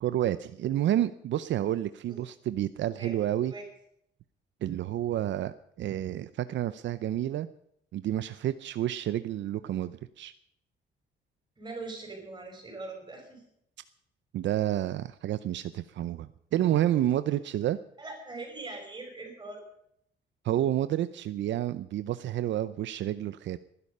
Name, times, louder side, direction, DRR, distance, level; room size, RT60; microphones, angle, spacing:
voice 1, 0.0-3.5 4.6-7.5 7.9-10.3 14.3-17.8 20.4-23.6, right 12 dB, 75° right, 13 dB, 0.6 m, -29 dB
voice 2, 11.6-13.4 18.0-19.6, right 3 dB, 20° right, 2 dB, 6.0 m, -41 dB
19.5 x 11.0 x 5.4 m, 0.72 s
cardioid pair, 150°, 19 cm